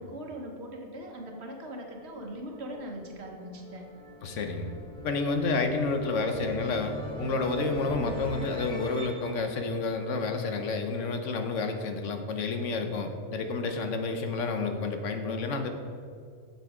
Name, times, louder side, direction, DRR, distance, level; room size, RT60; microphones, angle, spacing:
voice 1, 0.0-3.9, right 1 dB, 60° right, 2 dB, 1.3 m, -40 dB
sound 1, 1.7-10.8, equal, 5° left, 1.1 m, -43 dB
voice 2, 4.2-4.7 5.0-15.7, left 3 dB, 75° left, 6 dB, 1.1 m, -30 dB
8.0 x 6.9 x 4.9 m, 2.3 s
omnidirectional pair, 1.3 m